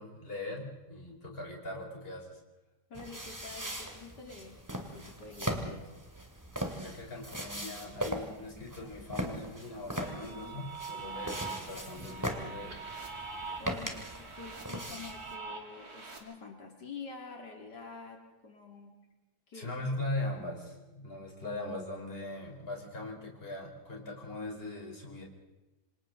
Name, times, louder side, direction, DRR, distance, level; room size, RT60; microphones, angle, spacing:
voice 1, 0.0-2.4 6.6-12.8 19.5-25.2, left 2 dB, 35° left, -1 dB, 4.4 m, -40 dB
voice 2, 2.9-5.9 13.6-19.1 19.5-19.7, left 4 dB, 90° left, 1 dB, 3.3 m, -47 dB
sound 1, 2.9-15.3, equal, 10° right, 2.4 m, -40 dB
sound 2, 10.0-16.2, right 4 dB, 65° right, 3.5 m, -43 dB
27.0 x 26.0 x 4.0 m, 1.1 s
omnidirectional pair, 1.8 m